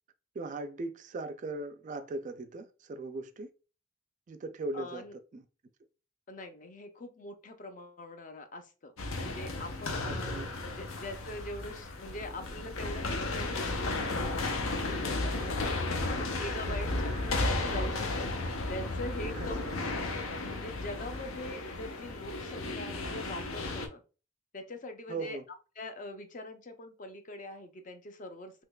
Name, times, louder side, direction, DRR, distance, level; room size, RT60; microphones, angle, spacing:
voice 1, 0.4-3.5 4.3-5.4 10.0-10.5 16.7-17.2 19.4-19.7 25.1-25.4, right 2 dB, 40° right, 0.3 m, -39 dB
voice 2, 4.7-5.2 6.3-8.9 9.2-19.7 20.1-24.0 24.5-25.4 25.8-28.5, left 1 dB, 40° left, 0.5 m, -43 dB
sound 1, 9.0-23.9, left 2 dB, 85° left, 0.6 m, -34 dB
3.5 x 3.0 x 2.2 m
head